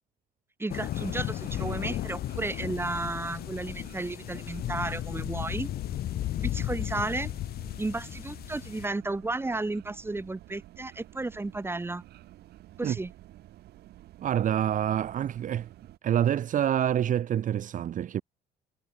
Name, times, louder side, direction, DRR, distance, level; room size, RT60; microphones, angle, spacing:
voice 1, 0.6-5.7 6.4-7.3 7.8-12.0 12.8-13.1, right 2 dB, 15° right, 5.3 m, -33 dB
sound 1, 0.7-8.9, left 13 dB, 65° left, 2.4 m, -34 dB
sound 2, 0.9-16.0, right 14 dB, 75° right, 7.4 m, -51 dB
voice 2, 14.2-15.7 16.0-18.2, right 10 dB, 50° right, 1.2 m, -27 dB
cardioid pair, 110°, 17 cm